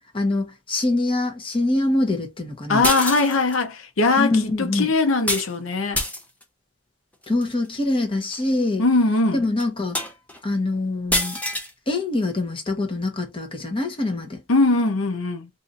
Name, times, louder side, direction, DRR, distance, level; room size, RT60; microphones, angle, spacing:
voice 1, 0.1-2.8 4.2-4.9 7.3-8.8 9.3-10.0 10.4-11.4 11.9-14.4, left 2 dB, 25° left, 0.9 m, -24 dB
voice 2, 2.7-6.0 8.8-9.4 14.5-15.5, left 3 dB, 75° left, 0.7 m, -21 dB
sound 1, 2.8-3.6 5.3-5.5 5.9-6.4 7.2-7.5 8.3-8.4 8.9-9.0 9.6-9.7 9.9-10.4 11.1-11.7, left 1 dB, 5° left, 0.7 m, -26 dB
2.7 x 2.5 x 3.9 m
head